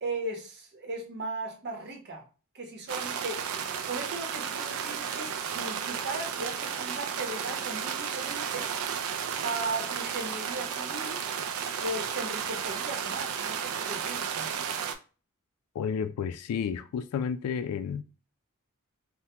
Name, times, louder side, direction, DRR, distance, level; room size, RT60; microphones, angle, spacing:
voice 1, 0.0-2.3 2.5-3.6 3.8-8.7 9.4-11.2 11.8-14.6, right 2 dB, 50° right, 0.8 m, -37 dB
sound 1, 2.9-14.9, right 7 dB, 75° right, 0.4 m, -33 dB
voice 2, 15.7-18.0, left 7 dB, 85° left, 0.3 m, -31 dB
3.4 x 2.1 x 2.8 m
head